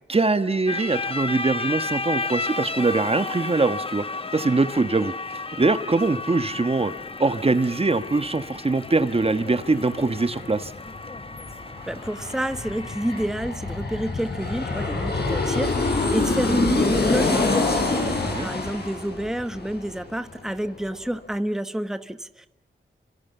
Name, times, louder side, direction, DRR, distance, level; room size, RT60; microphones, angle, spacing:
voice 1, 0.1-4.0 4.3-5.1 5.6-6.9 7.2-10.7 18.0-18.5, right 3 dB, 30° right, 11 dB, 1.2 m, -23 dB
sound 1, 0.7-13.3, left 3 dB, 30° left, 1.4 m, -33 dB
Aircraft, 8.9-9.0 9.2-20.5 20.8-20.9, left 3 dB, 55° left, 7.0 m, -26 dB
voice 2, 11.9-22.5, right 1 dB, 5° right, 10 dB, 1.2 m, -29 dB
26.5 x 25.5 x 7.1 m, 0.84 s
cardioid pair, 75°, 20 cm